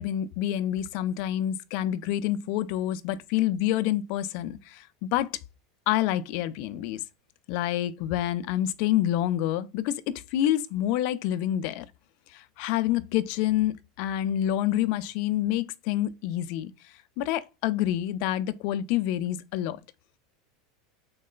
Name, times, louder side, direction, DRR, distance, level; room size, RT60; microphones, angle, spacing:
voice 1, 0.0-5.3 5.9-7.0 7.5-11.9 12.3-19.8, left 12 dB, 60° left, 0.3 m, -28 dB
3.8 x 2.1 x 2.4 m
hypercardioid pair, 90°, 2 cm